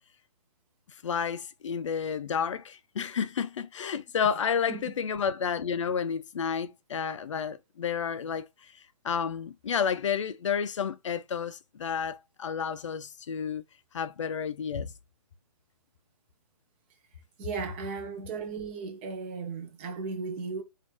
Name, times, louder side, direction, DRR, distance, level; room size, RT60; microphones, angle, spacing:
voice 1, 1.0-8.5 9.0-13.6 13.9-14.9, left 7 dB, 50° left, 0.5 m, -31 dB
voice 2, 17.4-20.6, right 4 dB, 20° right, 0.7 m, -36 dB
4.3 x 2.6 x 2.8 m
hypercardioid pair, 150°, 20 cm